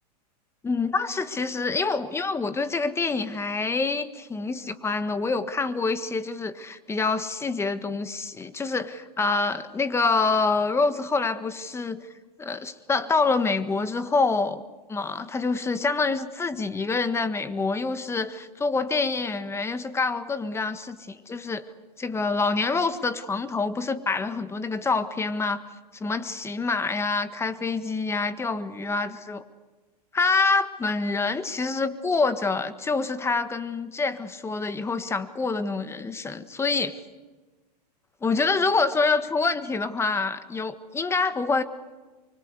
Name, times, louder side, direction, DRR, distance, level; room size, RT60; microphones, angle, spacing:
voice 1, 0.6-12.0 12.4-14.6 14.9-21.6 22.0-25.6 26.0-29.4 30.1-37.0 38.2-41.6, left 4 dB, 10° left, 12 dB, 1.5 m, -26 dB
24.5 x 24.5 x 8.3 m, 1.3 s
hypercardioid pair, 130°, 21 cm